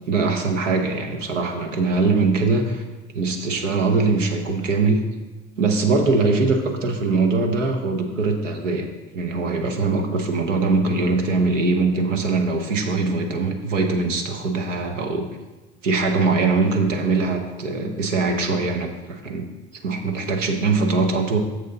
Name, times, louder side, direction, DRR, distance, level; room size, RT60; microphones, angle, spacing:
voice 1, 0.1-2.8 3.1-5.0 5.6-8.9 9.1-15.3 15.8-19.5 19.8-21.4, right 3 dB, 80° right, 4 dB, 1.0 m, -22 dB
6.9 x 6.4 x 4.0 m, 1.2 s
figure-of-eight pair, 65°, 37 cm